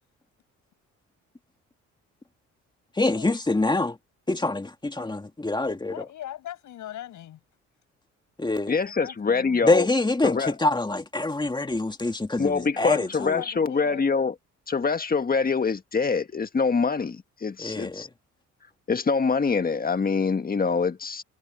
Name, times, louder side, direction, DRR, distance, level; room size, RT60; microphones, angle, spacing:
voice 1, 3.0-4.0 4.3-5.9 8.4-8.7 9.6-13.4 17.6-18.1, left 2 dB, 15° left, 2.3 m, -25 dB
voice 2, 5.9-7.4 8.9-9.7 12.7-14.1, left 12 dB, 75° left, 7.9 m, -40 dB
voice 3, 8.7-9.9 10.2-10.5 12.4-14.3 14.7-18.1 18.9-21.2, left 5 dB, 30° left, 1.6 m, -25 dB
cardioid pair, 90°, 30 cm